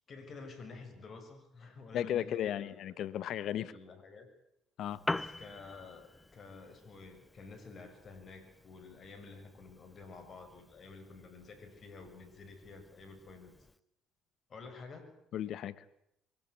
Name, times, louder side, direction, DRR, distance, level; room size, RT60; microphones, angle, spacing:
voice 1, 0.1-2.9 3.6-4.3 5.1-13.5 14.5-15.1, left 4 dB, 50° left, 9 dB, 6.8 m, -51 dB
voice 2, 1.9-3.7 4.8-5.0 15.3-15.8, left 10 dB, 65° left, 17 dB, 1.3 m, -35 dB
Piano, 4.8-13.8, left 2 dB, 15° left, 0.9 m, -45 dB
24.0 x 17.0 x 10.0 m, 0.78 s
hypercardioid pair, 60°, 0 cm